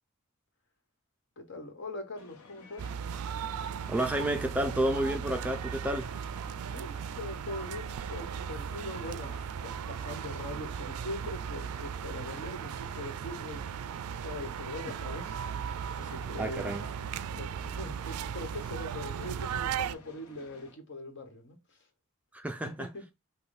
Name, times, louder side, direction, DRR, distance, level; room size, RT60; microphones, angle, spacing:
voice 1, 1.4-3.0 6.7-9.4 9.6-13.7 14.1-16.8 17.3-21.9 22.6-23.0, left 2 dB, 55° left, 1.3 m, -42 dB
sound 1, 2.2-20.7, left 3 dB, 85° left, 0.8 m, -54 dB
sound 2, 2.8-20.0, right 8 dB, 90° right, 0.3 m, -37 dB
voice 2, 3.9-6.1 16.4-16.8 22.3-22.9, right 1 dB, 5° right, 0.4 m, -30 dB
5.6 x 2.2 x 4.0 m
head